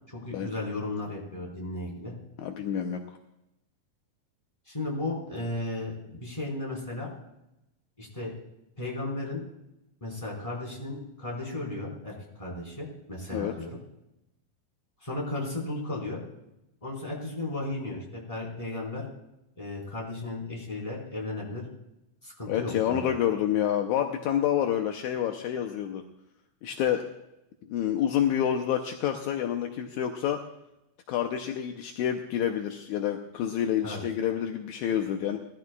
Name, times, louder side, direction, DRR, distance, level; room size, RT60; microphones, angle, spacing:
voice 1, 0.1-2.1 4.7-7.1 8.0-8.3 8.8-9.4 10.0-13.8 15.0-16.2 16.8-19.0 19.6-21.6 22.2-23.1 33.8-34.0, left 2 dB, 10° left, -3 dB, 4.1 m, -35 dB
voice 2, 2.4-3.2 13.3-13.5 22.5-26.0 26.6-27.0 27.7-30.4 31.1-35.4, left 10 dB, 80° left, 5 dB, 1.7 m, -28 dB
20.0 x 13.5 x 2.3 m, 0.89 s
omnidirectional pair, 4.2 m